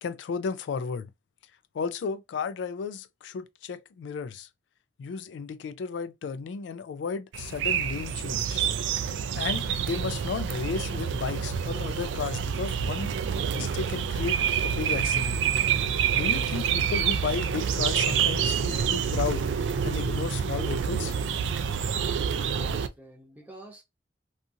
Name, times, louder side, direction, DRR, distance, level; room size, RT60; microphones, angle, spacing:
voice 1, 0.0-1.1 1.7-4.5 5.0-8.6 9.3-13.1 13.5-15.4 16.1-19.5 19.8-21.1, left 5 dB, 80° left, 0.3 m, -33 dB
sound 1, 7.3-22.9, right 7 dB, 85° right, 0.3 m, -27 dB
voice 2, 22.5-23.8, right 1 dB, 10° right, 0.7 m, -48 dB
2.5 x 2.4 x 2.7 m
head